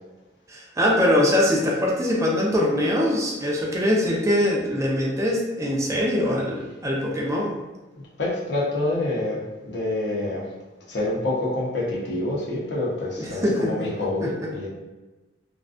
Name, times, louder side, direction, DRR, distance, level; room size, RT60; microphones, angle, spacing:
voice 1, 0.5-7.6 13.2-13.9 14.2-14.5, left 1 dB, 15° right, -2 dB, 0.3 m, -23 dB
voice 2, 7.9-10.4 10.9-14.7, left 2 dB, 65° left, -5 dB, 0.7 m, -27 dB
2.5 x 2.2 x 2.4 m, 1.1 s
head